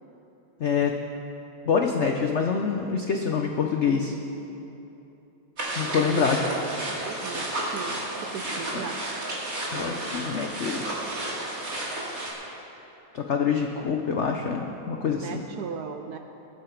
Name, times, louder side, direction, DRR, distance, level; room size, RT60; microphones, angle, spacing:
voice 1, 0.6-0.9 1.7-4.1 5.8-6.4 9.7-11.2 13.1-15.4, left 6 dB, 85° left, 3 dB, 0.6 m, -26 dB
sound 1, 5.6-12.3, right 1 dB, 45° right, 2.7 m, -32 dB
voice 2, 6.8-9.0 15.2-16.2, right 7 dB, 75° right, 6 dB, 0.9 m, -38 dB
21.0 x 8.8 x 4.6 m, 3.0 s
omnidirectional pair, 2.2 m